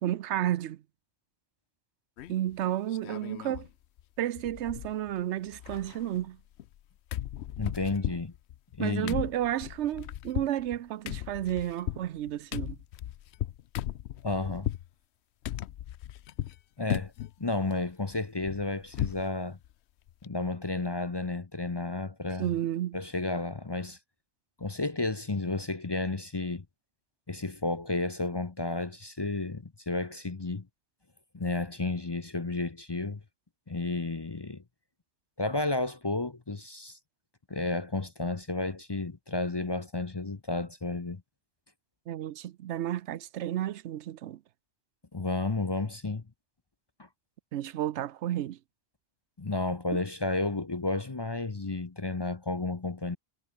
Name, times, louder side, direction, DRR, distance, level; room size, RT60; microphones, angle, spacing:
voice 1, 0.0-0.8 2.3-3.7 4.2-6.4 8.8-12.8 22.4-23.0 42.1-44.4 47.5-48.6, right 12 dB, 85° right, 0.9 m, -32 dB
sound 1, 2.2-2.5 2.9-3.7 4.0-4.1 4.4-5.2 5.5-6.8 7.1-14.9 15.4-16.6 16.9-17.3 17.7-19.3 19.6-19.7 20.1-20.3, left 12 dB, 75° left, 0.9 m, -37 dB
voice 2, 7.6-8.3 8.8-9.2 14.2-14.7 16.8-17.1 17.4-19.6 20.2-22.5 22.9-24.0 24.6-26.6 27.3-30.7 31.3-33.2 33.7-34.6 35.4-37.0 37.5-41.2 45.1-46.2 49.4-53.2, left 2 dB, 25° left, 0.7 m, -32 dB
omnidirectional pair, 1.2 m